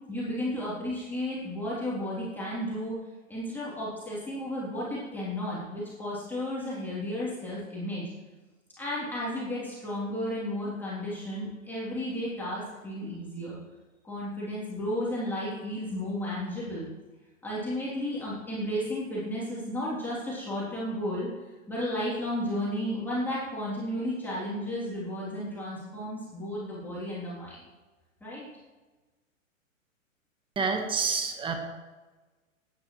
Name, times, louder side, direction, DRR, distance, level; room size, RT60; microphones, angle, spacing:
voice 1, 0.1-3.0 3.3-8.1 8.8-13.6 14.0-16.9 17.4-21.3 21.7-27.6 28.2-28.4, left 1 dB, 5° left, -8 dB, 3.3 m, -33 dB
voice 2, 30.5-31.5, right 5 dB, 10° right, 4 dB, 1.4 m, -28 dB
16.5 x 9.5 x 3.2 m, 1.2 s
figure-of-eight pair, 115°, 40 cm